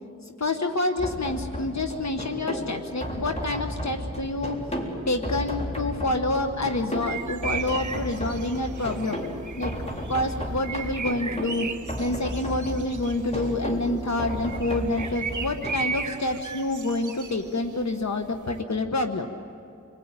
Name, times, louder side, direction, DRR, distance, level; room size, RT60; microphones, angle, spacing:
voice 1, 0.2-4.6 5.1-9.2 9.6-9.7 10.1-11.7 12.0-19.3, left 2 dB, 65° left, 5 dB, 1.3 m, -27 dB
sound 1, 1.0-15.8, equal, 20° left, 3.9 m, -34 dB
sound 2, 6.9-18.6, right 5 dB, 85° right, 1.1 m, -37 dB
28.5 x 21.0 x 9.0 m, 2.6 s
wide cardioid pair, 70°, 29 cm